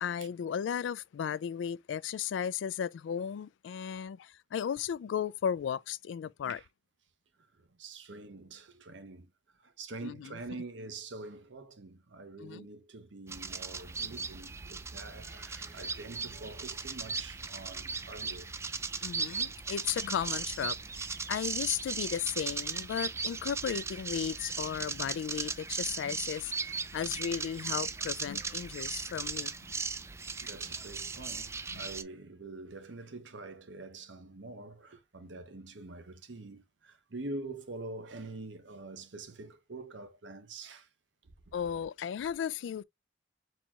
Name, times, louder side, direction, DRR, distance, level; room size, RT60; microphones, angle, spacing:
voice 1, 0.0-6.6 10.0-10.4 12.4-12.7 19.0-26.5 26.9-29.5 31.7-31.8 41.5-42.8, left 8 dB, 80° left, 0.3 m, -35 dB
voice 2, 7.6-9.3 9.6-18.5 30.4-40.9 41.2-41.6, right 2 dB, 85° right, 1.0 m, -45 dB
sound 1, 13.3-32.0, right 5 dB, 15° right, 0.3 m, -37 dB
4.5 x 4.2 x 2.3 m
head